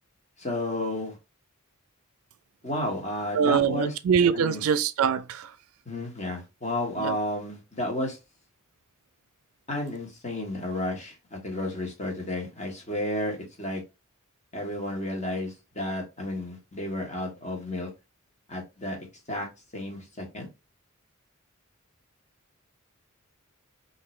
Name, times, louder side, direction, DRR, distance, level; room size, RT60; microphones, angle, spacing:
voice 1, 0.4-1.2 2.6-4.0 4.3-4.6 5.9-8.2 9.7-13.8 14.5-17.9 18.5-19.0 19.3-19.5 19.7-20.5, left 1 dB, 35° left, 1.2 m, -32 dB
voice 2, 3.3-5.5 7.0-7.2, right 7 dB, 80° right, 0.4 m, -23 dB
3.6 x 2.7 x 3.1 m
head